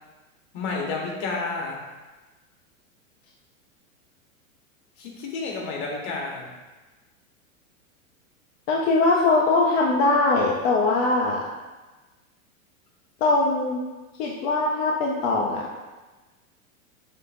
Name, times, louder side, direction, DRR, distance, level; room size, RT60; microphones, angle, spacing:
voice 1, 0.5-1.8 5.0-6.5, left 3 dB, 50° left, -1 dB, 1.3 m, -30 dB
voice 2, 8.7-11.4 13.2-13.8 14.2-15.7, left 3 dB, 35° left, -2 dB, 0.4 m, -21 dB
6.4 x 2.6 x 2.5 m, 1.2 s
hypercardioid pair, 120°, 43 cm